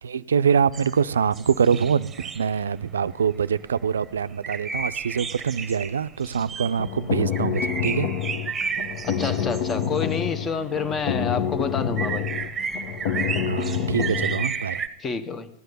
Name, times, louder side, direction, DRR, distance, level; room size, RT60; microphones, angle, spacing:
voice 1, 0.0-8.1 13.5-14.8, right 7 dB, 80° right, 0.4 m, -24 dB
sound 1, 0.7-14.9, right 6 dB, 20° right, 1.0 m, -33 dB
sound 2, 6.6-14.5, left 8 dB, 60° left, 1.1 m, -28 dB
voice 2, 9.0-12.3 15.0-15.5, left 5 dB, 25° left, 1.1 m, -29 dB
14.0 x 9.4 x 6.8 m
hypercardioid pair, 95°, 0 cm